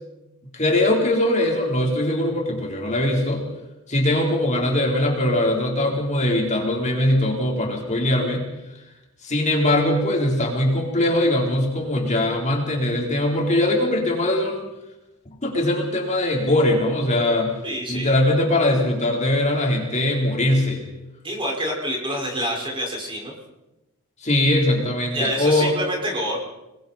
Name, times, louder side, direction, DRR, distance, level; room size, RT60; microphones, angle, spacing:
voice 1, 0.5-3.4 3.9-8.4 9.2-14.7 15.4-17.6 17.9-20.8 24.2-25.7, left 1 dB, 35° left, -1 dB, 4.2 m, -21 dB
voice 2, 17.6-18.1 21.2-23.3 25.1-26.4, equal, 25° right, -1 dB, 5.7 m, -27 dB
28.5 x 21.5 x 4.5 m, 0.95 s
head